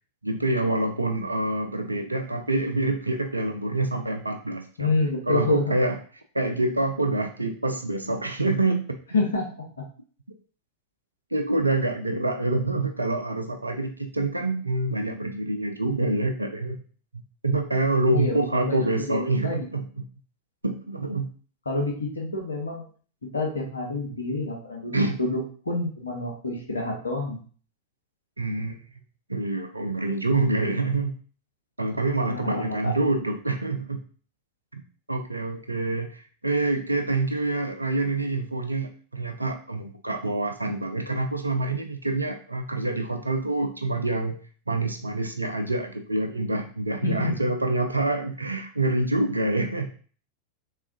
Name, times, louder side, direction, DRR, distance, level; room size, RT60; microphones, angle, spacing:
voice 1, 0.2-4.9 5.3-6.0 6.3-9.0 11.3-16.8 17.4-19.9 20.6-21.3 24.9-25.2 28.4-28.8 29.3-31.1 31.8-34.0 34.7-34.8 35.1-44.4 44.7-49.9, right 2 dB, 80° right, 7 dB, 0.4 m, -26 dB
voice 2, 4.8-5.7 9.1-9.4 18.1-18.8 19.1-19.7 21.7-22.9 23.3-25.4 25.6-27.4 32.3-33.0 47.0-47.5, left 3 dB, 75° left, 0 dB, 1.0 m, -28 dB
4.0 x 3.4 x 2.7 m, 0.42 s
figure-of-eight pair, 90°, 0 cm